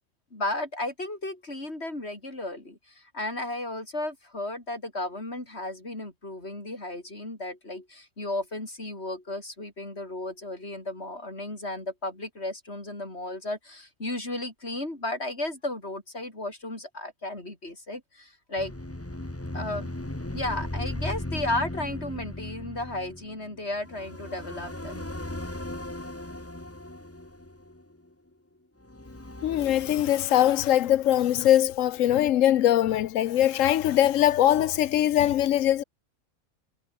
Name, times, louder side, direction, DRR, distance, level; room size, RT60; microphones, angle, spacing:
voice 1, 0.3-18.7 19.5-19.9 20.3-25.1, left 2 dB, 55° left, 5.9 m, -34 dB
sound 1, 18.6-28.1 28.8-30.9, left 1 dB, 10° left, 1.6 m, -37 dB
voice 2, 29.4-35.8, left 12 dB, 80° left, 1.1 m, -22 dB
omnidirectional pair, 1.3 m